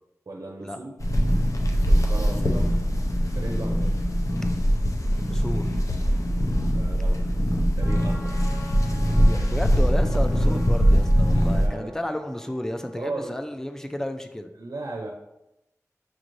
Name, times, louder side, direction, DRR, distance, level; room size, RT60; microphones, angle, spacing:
voice 1, 0.3-0.9 1.9-2.7 3.2-4.0 6.7-7.2 7.6-8.4 10.5-10.6 11.4-12.0 12.9-13.4 14.6-15.1, right 2 dB, 75° right, 1 dB, 0.5 m, -36 dB
sound 1, 1.0-11.7, equal, 60° left, 0.6 m, -22 dB
voice 2, 5.1-5.7 9.2-14.5, left 1 dB, 10° left, 7 dB, 0.4 m, -32 dB
Trumpet, 7.8-14.0, left 2 dB, 25° left, 0.8 m, -46 dB
6.1 x 3.1 x 2.5 m, 0.88 s
wide cardioid pair, 45°, 6 cm